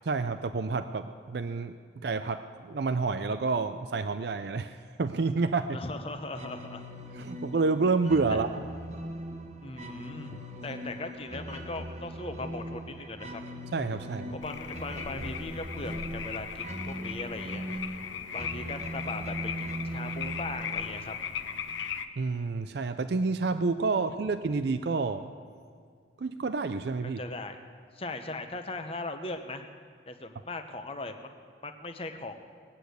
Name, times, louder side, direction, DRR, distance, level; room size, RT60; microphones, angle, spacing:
voice 1, 0.1-1.8 2.0-5.8 7.1-8.6 13.7-14.4 22.2-25.3 26.2-27.2, right 4 dB, 55° right, 10 dB, 0.4 m, -29 dB
voice 2, 5.7-6.8 9.6-13.4 14.3-17.9 18.3-21.1 27.0-27.6 27.9-29.6 30.1-31.3 31.6-32.4, left 2 dB, 30° left, 7 dB, 0.9 m, -39 dB
sound 1, 6.3-21.8, equal, 35° right, 1.2 m, -40 dB
sound 2, 14.4-22.1, left 7 dB, 80° left, 0.7 m, -38 dB
20.0 x 8.4 x 8.0 m, 2.1 s
head